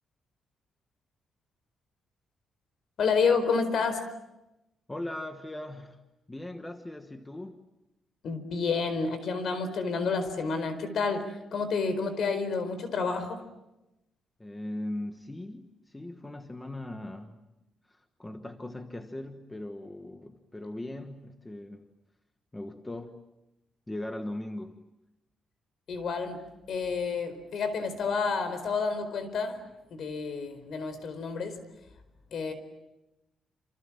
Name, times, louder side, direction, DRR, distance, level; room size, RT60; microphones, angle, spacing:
voice 1, 3.0-4.1 8.2-13.4 25.9-31.6 32.3-32.5, left 5 dB, 55° left, 4.6 m, -30 dB
voice 2, 4.9-6.0 6.3-7.6 14.4-17.4 17.9-21.9 22.5-23.2 23.9-24.8, left 1 dB, 10° left, 1.3 m, -39 dB
28.0 x 27.5 x 7.5 m
cardioid pair, 170°, 0 cm